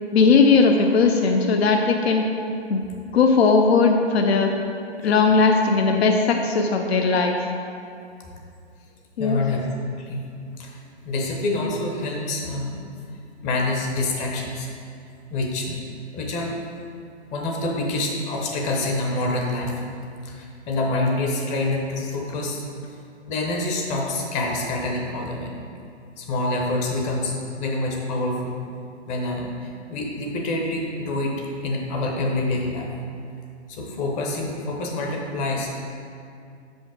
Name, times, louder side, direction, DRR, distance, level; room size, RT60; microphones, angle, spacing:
voice 1, 0.1-2.3 2.7-2.8 3.1-4.5 5.0-7.3 9.2-9.4, left 4 dB, 65° left, 3 dB, 0.7 m, -18 dB
voice 2, 9.2-9.7 9.9-12.8 13.4-14.7 15.3-15.8 16.1-16.6 17.3-19.8 20.2-22.6 23.3-25.5 26.2-28.6 29.1-32.9 33.7-35.7, left 2 dB, 20° left, -1 dB, 0.8 m, -27 dB
6.8 x 5.2 x 3.7 m, 2.5 s
hypercardioid pair, 130°, 34 cm